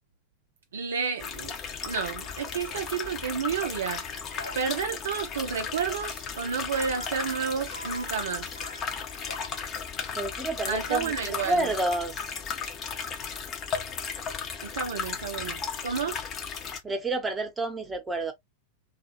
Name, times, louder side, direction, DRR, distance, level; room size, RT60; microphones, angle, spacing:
voice 1, 0.7-1.5 1.8-4.0 4.5-8.5 10.7-11.7 14.6-16.2, right 6 dB, 65° right, 0.4 m, -31 dB
sound 1, 1.2-16.8, left 6 dB, 30° left, 0.7 m, -35 dB
sound 2, 2.2-4.6 6.7-9.5, left 1 dB, 75° left, 0.7 m, -45 dB
voice 2, 10.1-12.3 16.8-18.3, right 2 dB, 15° right, 0.8 m, -29 dB
2.4 x 2.1 x 2.9 m
figure-of-eight pair, 90°, 0 cm